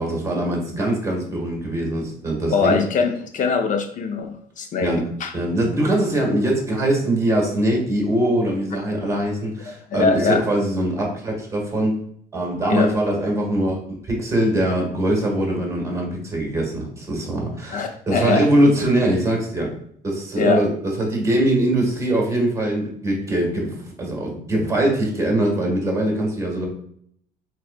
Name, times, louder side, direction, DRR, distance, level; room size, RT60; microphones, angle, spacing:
voice 1, 0.0-2.8 4.8-5.1 5.3-12.0 12.3-19.7 20.0-20.7 21.0-26.7, right 1 dB, 15° right, -1 dB, 1.8 m, -22 dB
voice 2, 2.5-4.9 5.2-5.3 9.9-10.4 12.7-12.9 17.7-18.4 20.4-20.6, left 5 dB, 50° left, 6 dB, 0.7 m, -22 dB
4.4 x 4.2 x 2.4 m, 0.66 s
cardioid pair, 110°, 17 cm